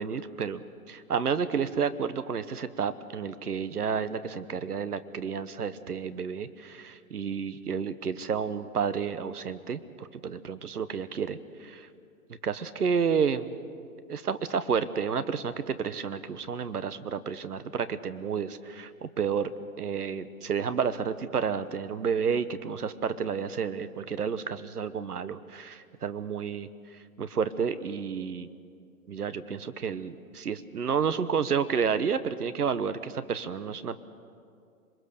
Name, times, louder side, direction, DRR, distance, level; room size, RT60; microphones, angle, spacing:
voice 1, 0.0-11.9 12.4-13.6 14.1-28.5 29.1-34.0, right 6 dB, 90° right, 13 dB, 1.2 m, -31 dB
27.0 x 21.0 x 6.8 m, 2.4 s
hypercardioid pair, 135°, 44 cm